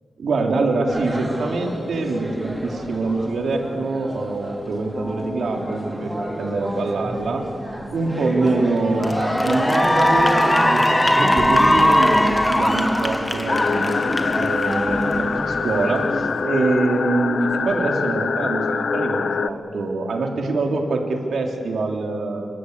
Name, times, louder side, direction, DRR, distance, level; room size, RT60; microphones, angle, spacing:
voice 1, 0.2-7.5 7.9-14.0 14.3-22.5, right 3 dB, 85° right, 2 dB, 3.4 m, -24 dB
sound 1, 0.9-16.3, equal, 10° right, 3.7 m, -30 dB
Cheering / Applause, 8.2-8.5 8.9-15.5, left 1 dB, 10° left, 1.6 m, -20 dB
sound 2, 13.5-19.5, left 5 dB, 65° left, 0.8 m, -24 dB
28.5 x 24.5 x 8.4 m, 2.3 s
wide cardioid pair, 155°, 0 cm